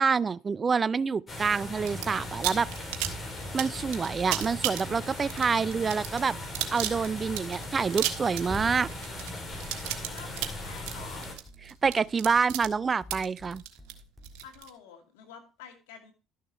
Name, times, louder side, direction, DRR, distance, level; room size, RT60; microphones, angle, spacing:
voice 1, 0.0-2.7 3.5-6.4 6.7-8.9 11.8-13.6, right 5 dB, 30° right, 0.4 m, -27 dB
sound 1, 1.3-11.3, left 1 dB, 30° left, 4.1 m, -39 dB
sound 2, 1.9-2.1 2.4-14.7, right 14 dB, 75° right, 1.5 m, -34 dB
sound 3, 2.2-14.6, left 3 dB, 5° right, 2.4 m, -50 dB
voice 2, 10.0-11.3 14.4-16.1, left 8 dB, 85° left, 2.5 m, -48 dB
12.5 x 6.4 x 4.4 m
supercardioid pair, 80°, 0 cm